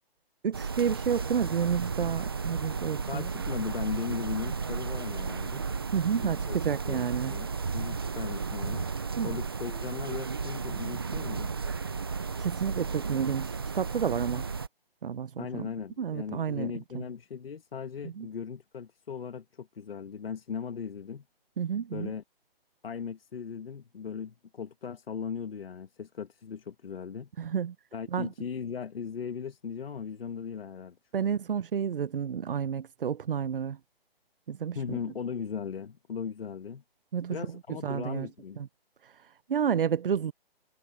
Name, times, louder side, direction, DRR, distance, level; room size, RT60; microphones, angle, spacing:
voice 1, 0.4-3.3 5.9-7.3 9.2-9.4 12.4-14.5 15.0-15.7 16.0-17.0 18.0-18.3 21.6-22.1 27.4-27.7 28.1-28.3 31.1-33.8 34.5-35.0 37.1-38.3 38.6-38.7 39.0-40.3, right 8 dB, 65° right, 0.9 m, -30 dB
sound 1, 0.5-14.7, right 5 dB, 25° right, 0.5 m, -33 dB
voice 2, 3.1-5.6 6.2-6.6 6.9-7.5 7.7-8.9 9.2-11.5 15.4-21.2 21.9-22.2 22.8-27.3 27.9-31.3 34.8-36.8 37.3-38.6, left 6 dB, 75° left, 2.0 m, -38 dB
hypercardioid pair, 170°, 30 cm